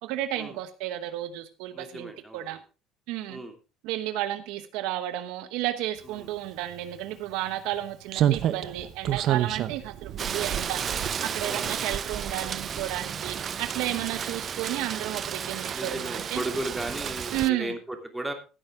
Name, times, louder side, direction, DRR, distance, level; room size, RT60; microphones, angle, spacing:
voice 1, 0.0-2.6 3.1-3.4 3.8-10.8 11.2-16.4 17.3-17.7, right 14 dB, 80° right, 10 dB, 1.1 m, -32 dB
voice 2, 1.7-2.6 3.3-3.5 6.0-6.3 11.4-11.9 13.9-14.3 15.7-18.3, right 1 dB, 10° right, 4 dB, 2.8 m, -36 dB
Slam, 6.7-6.8 8.1-11.6 11.9-12.1, right 11 dB, 60° right, 0.8 m, -28 dB
Rain, 10.2-17.5, right 8 dB, 40° right, 0.5 m, -33 dB
15.0 x 8.8 x 3.7 m, 0.32 s
cardioid pair, 105°, 0 cm